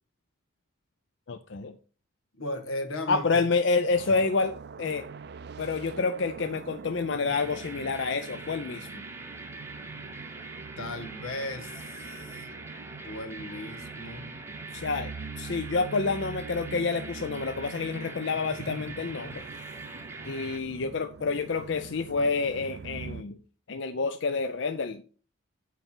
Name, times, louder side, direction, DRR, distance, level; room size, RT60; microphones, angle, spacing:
voice 1, 1.3-1.8 3.1-5.0 5.6-9.0 14.7-19.4 20.2-23.4 23.7-25.0, left 4 dB, 60° left, 0.5 m, -28 dB
voice 2, 2.3-3.4 10.8-12.5 13.0-14.4, left 1 dB, 90° left, 1.5 m, -36 dB
sound 1, 3.9-23.2, right 5 dB, 50° right, 0.4 m, -44 dB
sound 2, 7.3-20.6, right 3 dB, 10° right, 0.7 m, -43 dB
8.2 x 4.5 x 5.9 m
head